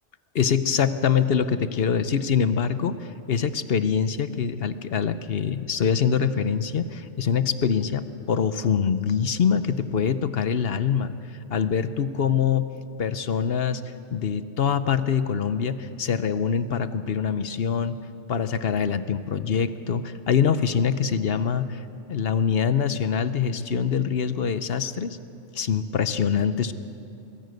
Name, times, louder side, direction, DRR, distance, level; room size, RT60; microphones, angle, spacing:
voice 1, 0.3-12.7 13.0-13.8 14.1-18.0 18.3-21.8 22.1-25.2 25.5-26.7, left 7 dB, 55° left, 12 dB, 0.9 m, -24 dB
22.5 x 15.5 x 7.9 m, 2.7 s
omnidirectional pair, 1.2 m